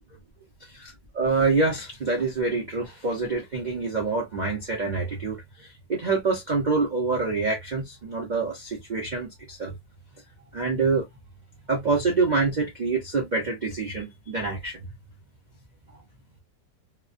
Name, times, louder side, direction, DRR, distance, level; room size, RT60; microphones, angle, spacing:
voice 1, 1.1-9.7 10.5-11.0 11.7-14.8, right 4 dB, 85° right, 0.4 m, -26 dB
3.0 x 2.1 x 2.5 m
omnidirectional pair, 2.0 m